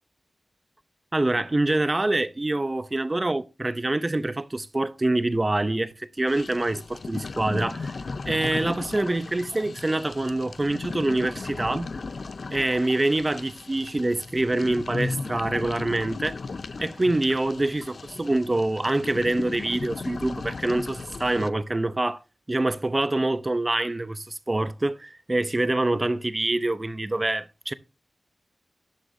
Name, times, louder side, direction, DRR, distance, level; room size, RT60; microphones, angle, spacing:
voice 1, 1.1-7.9 8.3-11.9 12.5-16.4 16.8-22.2 22.5-27.7, right 2 dB, 30° right, 0.7 m, -25 dB
sound 1, 6.3-21.5, left 3 dB, 65° left, 0.5 m, -36 dB
12.5 x 11.5 x 2.7 m
wide cardioid pair, 75°, 0 cm